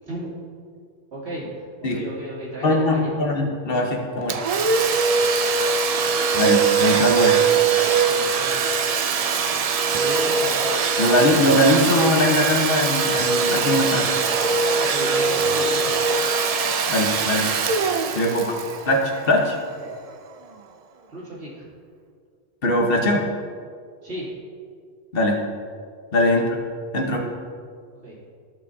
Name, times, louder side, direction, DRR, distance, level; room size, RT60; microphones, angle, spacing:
voice 1, 1.1-3.2 4.2-4.4 5.1-5.7 8.0-8.7 10.0-10.6 14.8-16.0 19.8-19.9 21.1-21.7 24.0-24.3 26.3-26.5 28.0-28.1, right 1 dB, 80° right, -8 dB, 2.8 m, -35 dB
voice 2, 2.6-4.3 6.4-7.4 11.0-14.1 16.9-17.5 18.1-18.6 18.8-19.6 22.6-23.3 25.1-25.4 26.1-26.5 26.9-27.3, left 1 dB, 60° left, 1 dB, 1.2 m, -21 dB
Domestic sounds home sounds, 4.3-19.8, right 5 dB, 55° right, 0.4 m, -21 dB
14.0 x 6.2 x 2.7 m, 2.1 s
omnidirectional pair, 1.1 m